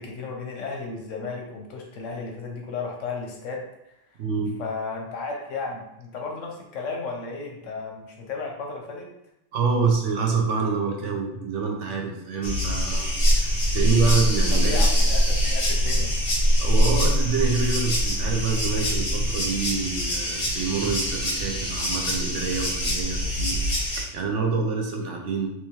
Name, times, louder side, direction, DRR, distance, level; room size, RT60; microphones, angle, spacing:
voice 1, 0.0-4.2 4.6-9.1 14.5-16.3, left 4 dB, 90° left, 1 dB, 1.1 m, -34 dB
voice 2, 4.2-4.6 9.5-14.8 16.6-25.5, right 5 dB, 75° right, 1 dB, 1.0 m, -27 dB
sound 1, 12.4-24.0, equal, 55° left, 1.1 m, -23 dB
3.5 x 2.9 x 2.9 m, 0.82 s
omnidirectional pair, 1.2 m